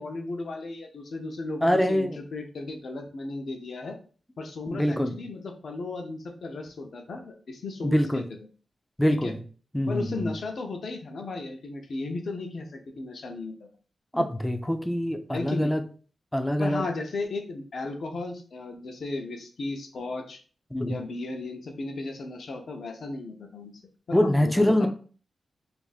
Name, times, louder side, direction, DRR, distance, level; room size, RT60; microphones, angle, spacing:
voice 1, 0.0-4.0 4.4-8.2 9.1-9.3 9.9-13.5 15.3-15.7 16.6-20.4 20.9-23.7 24.1-24.9, left 3 dB, 60° left, 4 dB, 0.6 m, -35 dB
voice 2, 1.6-2.2 4.7-5.2 7.8-8.3 9.0-9.4 9.7-10.3 14.1-15.8 16.3-16.9 20.7-21.0 24.1-24.9, equal, 5° left, 8 dB, 0.4 m, -24 dB
2.6 x 2.6 x 3.9 m, 0.40 s
wide cardioid pair, 130°, 0 cm